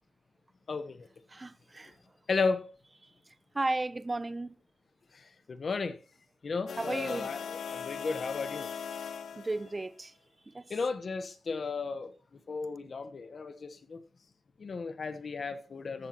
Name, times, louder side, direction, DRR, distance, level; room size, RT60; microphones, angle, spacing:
voice 1, 0.7-1.1 2.3-2.6 5.1-6.0 6.4-8.7 10.7-12.1 12.5-14.0 14.6-16.1, left 4 dB, 45° left, 1.1 m, -34 dB
voice 2, 1.3-1.9 3.5-4.5 6.8-7.3 9.4-10.1 10.5-10.6, right 2 dB, 20° right, 0.7 m, -34 dB
sound 1, 6.7-9.9, left 7 dB, 80° left, 0.6 m, -39 dB
15.0 x 11.5 x 3.0 m
wide cardioid pair, 155°, 0 cm